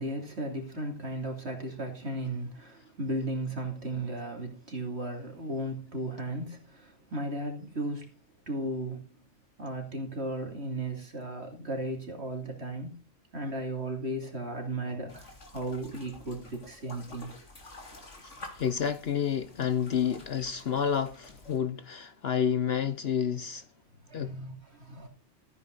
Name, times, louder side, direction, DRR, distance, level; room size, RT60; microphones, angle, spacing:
voice 1, 0.0-8.1 8.5-9.0 9.6-13.0 13.3-17.3 24.1-25.1, right 1 dB, 60° right, 3.2 m, -35 dB
sound 1, 15.1-21.6, left 2 dB, 80° left, 3.4 m, -49 dB
voice 2, 18.2-23.6 24.1-24.3, left 8 dB, 60° left, 1.0 m, -30 dB
14.0 x 9.6 x 3.9 m
omnidirectional pair, 1.2 m